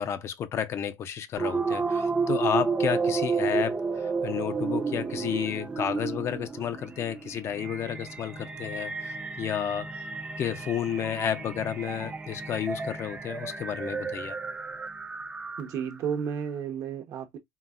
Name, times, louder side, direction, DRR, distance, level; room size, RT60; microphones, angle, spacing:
voice 1, 0.0-10.1 10.4-14.4, left 9 dB, 45° left, 0.4 m, -31 dB
sound 1, 1.4-15.9, right 4 dB, 15° right, 0.4 m, -32 dB
voice 2, 15.6-17.4, right 7 dB, 55° right, 0.7 m, -32 dB
3.8 x 2.0 x 2.3 m
cardioid pair, 130°, 7 cm